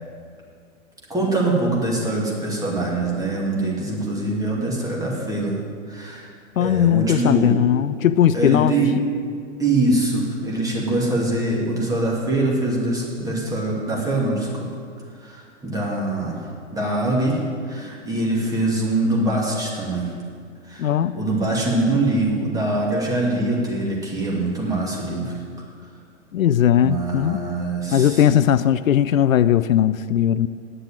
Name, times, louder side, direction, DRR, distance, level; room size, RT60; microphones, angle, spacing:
voice 1, 1.1-5.6 5.9-6.3 6.6-7.6 8.3-9.0 9.6-14.7 15.2-16.5 16.7-20.1 20.6-25.3 26.7-28.2, right 2 dB, 10° right, -3 dB, 2.4 m, -23 dB
voice 2, 6.6-8.7 20.8-21.2 26.3-27.4 27.9-30.5, left 10 dB, 80° left, 14 dB, 0.5 m, -18 dB
9.8 x 7.6 x 9.0 m, 2.2 s
hypercardioid pair, 120°, 40 cm